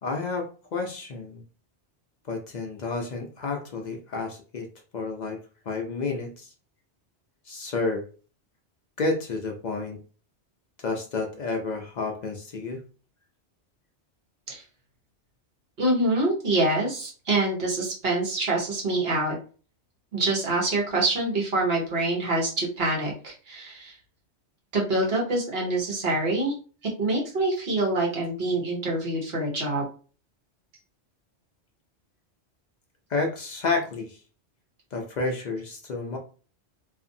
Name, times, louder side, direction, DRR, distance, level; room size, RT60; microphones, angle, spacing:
voice 1, 0.0-1.4 2.3-4.7 4.9-6.5 7.5-8.1 9.0-10.0 10.8-12.8 33.1-34.2 34.9-36.2, left 3 dB, 60° left, 2 dB, 0.5 m, -30 dB
voice 2, 15.8-19.4 20.1-23.9 24.7-26.5 27.0-29.8, right 2 dB, 60° right, -2 dB, 1.2 m, -25 dB
2.6 x 2.5 x 2.6 m, 0.37 s
omnidirectional pair, 1.2 m